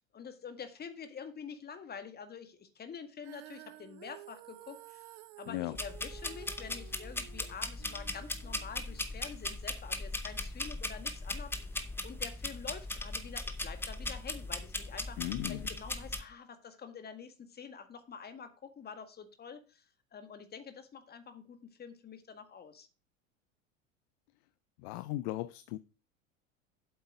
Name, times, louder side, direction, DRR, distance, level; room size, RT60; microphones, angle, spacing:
voice 1, 0.1-5.1 5.4-22.9, left 6 dB, 25° left, 1.7 m, -47 dB
Female singing, 3.2-9.5, right 16 dB, 50° right, 0.9 m, -53 dB
voice 2, 5.5-5.8 15.2-15.7 24.8-25.8, left 17 dB, 40° left, 0.5 m, -37 dB
sound 1, 5.7-16.2, left 2 dB, 5° left, 0.9 m, -39 dB
7.8 x 7.8 x 4.9 m
figure-of-eight pair, 80°, 41 cm